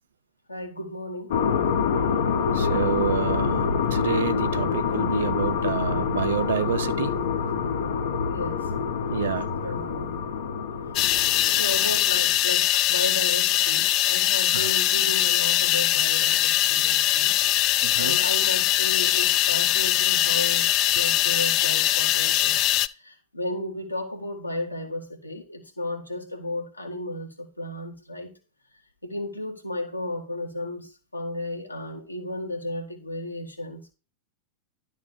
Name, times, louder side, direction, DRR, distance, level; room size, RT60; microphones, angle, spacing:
voice 1, 0.5-1.3 8.3-8.7 9.6-10.2 11.5-17.4 18.0-22.6 22.9-28.3 29.0-33.9, left 1 dB, 85° left, 1.8 m, -34 dB
sound 1, 1.3-12.4, left 6 dB, 60° left, 1.0 m, -26 dB
voice 2, 2.5-7.1 9.1-9.7 14.5-14.7 17.4-17.5 17.8-18.2, right 10 dB, 60° right, 0.4 m, -29 dB
sound 2, 10.9-22.9, left 14 dB, 40° left, 0.3 m, -22 dB
11.5 x 4.2 x 5.1 m
figure-of-eight pair, 90°, 0 cm